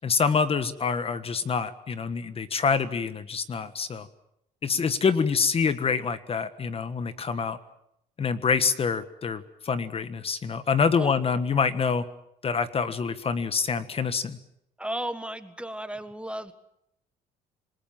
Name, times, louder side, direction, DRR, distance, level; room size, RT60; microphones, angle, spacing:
voice 1, 0.0-4.1 4.6-7.6 8.2-12.0 12.4-14.4, left 5 dB, 35° left, 12 dB, 1.4 m, -26 dB
voice 2, 14.8-16.5, right 1 dB, 5° right, 10 dB, 1.5 m, -34 dB
27.0 x 20.5 x 7.4 m, 0.78 s
cardioid pair, 110°, 17 cm